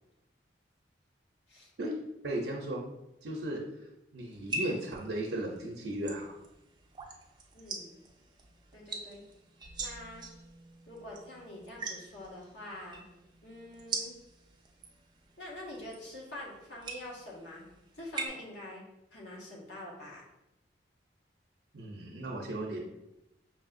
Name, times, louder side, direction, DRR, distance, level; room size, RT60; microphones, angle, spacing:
voice 1, 2.2-2.8 3.2-3.6 4.1-6.3 21.7-22.8, right 1 dB, 70° right, -1 dB, 0.6 m, -35 dB
sound 1, 4.3-18.3, right 3 dB, 25° right, 0.4 m, -43 dB
voice 2, 7.5-7.9 8.7-9.2 9.8-10.3 10.9-13.0 13.4-14.1 15.4-17.6 17.9-18.8 19.1-20.3, left 1 dB, 85° left, -4 dB, 1.2 m, -45 dB
5.3 x 2.7 x 2.5 m, 0.90 s
head